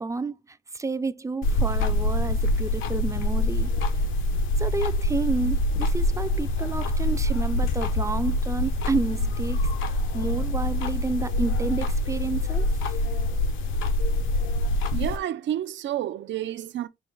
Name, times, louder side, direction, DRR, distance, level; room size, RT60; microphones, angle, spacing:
voice 1, 0.0-3.7 4.6-13.0, right 3 dB, 15° right, 0.4 m, -30 dB
sound 1, 1.4-15.2, left 1 dB, 90° left, 0.8 m, -25 dB
voice 2, 14.9-16.9, right 12 dB, 65° right, 0.5 m, -30 dB
5.9 x 2.1 x 3.8 m
cardioid pair, 90°, 20 cm